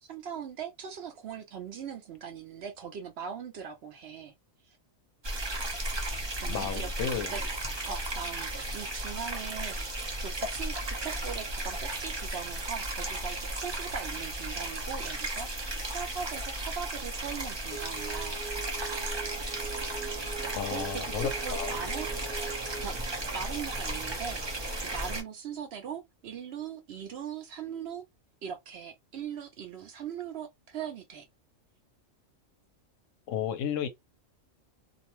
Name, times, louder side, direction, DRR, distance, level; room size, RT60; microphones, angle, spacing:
voice 1, 0.0-4.3 4.7-4.8 6.2-7.5 7.9-18.4 20.7-22.1 22.6-28.0 28.4-31.2, right 7 dB, 65° right, 0.7 m, -40 dB
sound 1, 5.2-25.2, right 2 dB, 35° right, 0.4 m, -35 dB
voice 2, 6.5-7.4 20.5-21.8 33.3-33.9, left 8 dB, 80° left, 0.9 m, -33 dB
sound 2, 17.7-22.9, right 6 dB, 55° left, 1.1 m, -42 dB
2.6 x 2.1 x 2.9 m
omnidirectional pair, 1.3 m